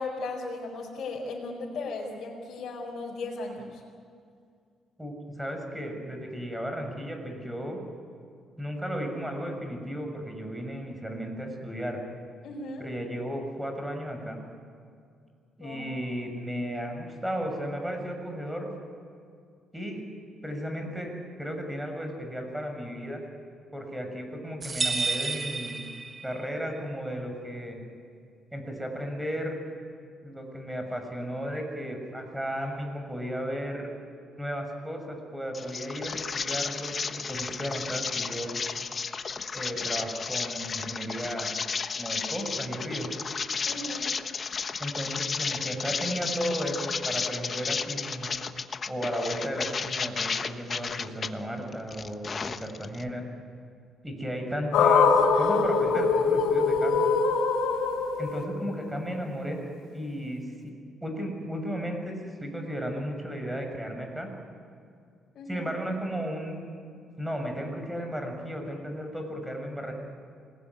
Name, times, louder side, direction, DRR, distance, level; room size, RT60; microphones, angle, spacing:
voice 1, 0.0-3.8 12.4-12.9 15.6-15.8 43.6-44.1 65.3-65.6, left 3 dB, 65° left, -3 dB, 4.8 m, -36 dB
voice 2, 5.0-7.8 8.6-12.0 12.8-14.4 15.6-18.7 19.7-20.0 20.4-21.1 21.4-23.2 23.7-25.8 26.2-27.8 28.5-29.7 30.2-33.9 34.4-38.6 39.5-41.5 42.0-43.1 44.8-48.3 48.9-53.3 54.0-57.1 58.2-59.6 59.9-60.7 61.0-64.3 65.5-66.6 67.2-69.9, equal, 5° right, 4 dB, 6.6 m, -34 dB
sound 1, 24.6-26.6, right 4 dB, 30° right, 1.4 m, -31 dB
sound 2, 35.5-51.3 51.7-53.0, left 5 dB, 40° left, 1.2 m, -33 dB
sound 3, 54.7-59.0, left 5 dB, 90° left, 2.4 m, -23 dB
27.5 x 20.5 x 9.7 m, 2.3 s
cardioid pair, 90°, 0 cm